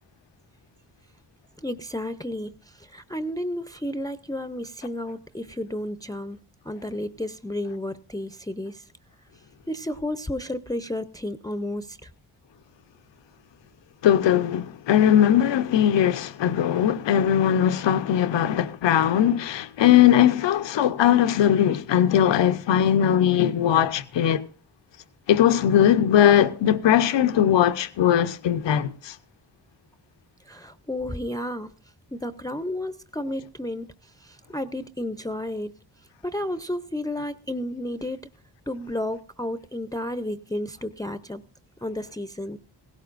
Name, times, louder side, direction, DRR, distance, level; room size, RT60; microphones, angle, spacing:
voice 1, 1.6-6.4 6.6-8.8 9.7-12.1 30.5-31.7 32.1-33.9 34.2-35.8 36.2-38.3 38.7-41.4 41.8-42.6, left 1 dB, 10° left, 0.6 m, -32 dB
voice 2, 14.0-24.4 25.3-29.1, left 10 dB, 85° left, 0.9 m, -20 dB
17.0 x 17.0 x 2.5 m
cardioid pair, 85°, 42 cm